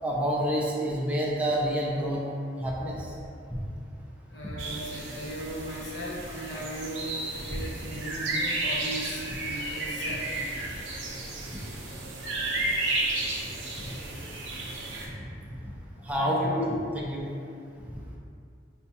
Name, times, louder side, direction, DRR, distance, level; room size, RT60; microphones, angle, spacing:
voice 1, 0.0-2.2 2.6-3.1 11.5-11.6 16.0-17.2 17.9-18.0, equal, 10° right, -4 dB, 0.4 m, -28 dB
voice 2, 4.3-10.2 16.2-16.6, equal, 70° left, -4 dB, 0.7 m, -38 dB
sound 1, 4.6-15.1, right 2 dB, 80° right, 0.5 m, -33 dB
4.3 x 2.3 x 2.7 m, 2.4 s
head